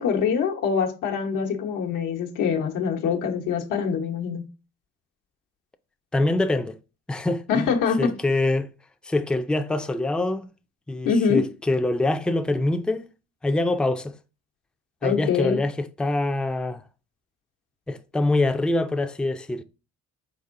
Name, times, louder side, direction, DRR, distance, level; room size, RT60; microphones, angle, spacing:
voice 1, 0.0-4.4 7.5-8.1 11.0-11.4 15.0-15.6, left 6 dB, 85° left, 1.0 m, -24 dB
voice 2, 6.1-6.8 7.1-7.7 8.0-8.7 9.0-10.5 10.9-13.1 13.4-14.2 15.0-16.8 17.9-19.6, left 2 dB, 5° left, 0.3 m, -24 dB
4.4 x 4.1 x 2.5 m
cardioid pair, 90°, 30 cm